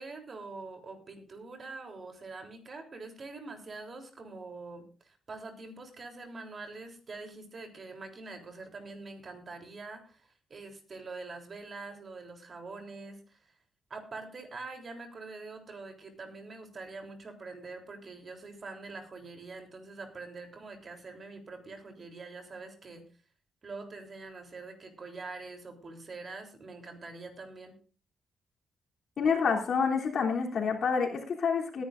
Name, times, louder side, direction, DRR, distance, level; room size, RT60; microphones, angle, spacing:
voice 1, 0.0-10.2 10.5-13.4 13.9-23.0 23.6-27.8, right 3 dB, 45° right, 4 dB, 3.4 m, -44 dB
voice 2, 29.2-31.8, left 5 dB, 65° left, 0 dB, 3.2 m, -28 dB
20.5 x 10.5 x 2.6 m, 0.37 s
cardioid pair, 90°, 0 cm